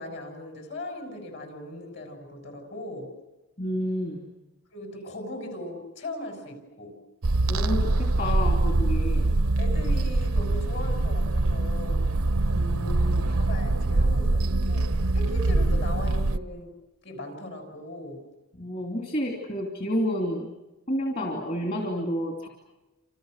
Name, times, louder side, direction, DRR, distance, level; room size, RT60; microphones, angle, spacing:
voice 1, 0.0-3.1 4.7-7.0 9.6-12.1 12.9-16.7 17.0-18.3, left 1 dB, 55° left, 4 dB, 6.3 m, -39 dB
voice 2, 3.6-4.2 7.5-9.3 12.5-13.2 18.5-20.5 20.9-22.5, equal, 40° left, 1 dB, 2.9 m, -30 dB
sound 1, 7.2-16.4, right 2 dB, 80° right, 0.8 m, -24 dB
30.0 x 27.5 x 6.6 m, 1.1 s
head